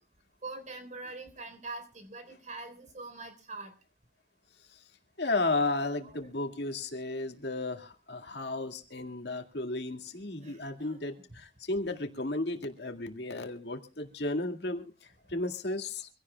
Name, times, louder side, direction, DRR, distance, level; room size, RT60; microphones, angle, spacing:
voice 1, 0.4-3.7 10.4-11.0, right 3 dB, 45° right, 9 dB, 3.7 m, -43 dB
voice 2, 5.2-16.1, left 2 dB, 70° left, 5 dB, 2.0 m, -34 dB
25.0 x 16.5 x 2.2 m, 0.32 s
head